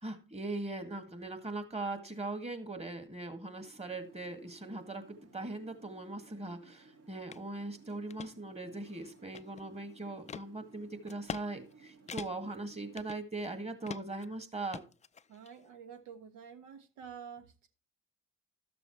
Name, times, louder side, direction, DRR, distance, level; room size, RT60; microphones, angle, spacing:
voice 1, 0.0-14.8, right 2 dB, 20° right, 2.0 m, -40 dB
sound 1, 3.6-13.2, right 4 dB, 60° right, 1.7 m, -60 dB
sound 2, 7.3-7.4 7.9-8.3 8.8-9.8 10.3-10.5 11.1-11.5 11.7-11.8 12.1-12.6 13.0-13.5 13.9-14.3 14.7-15.5, left 6 dB, 25° left, 0.4 m, -44 dB
voice 2, 15.3-17.7, right 7 dB, 75° right, 1.4 m, -49 dB
12.5 x 6.9 x 3.1 m
hypercardioid pair, 55°, 29 cm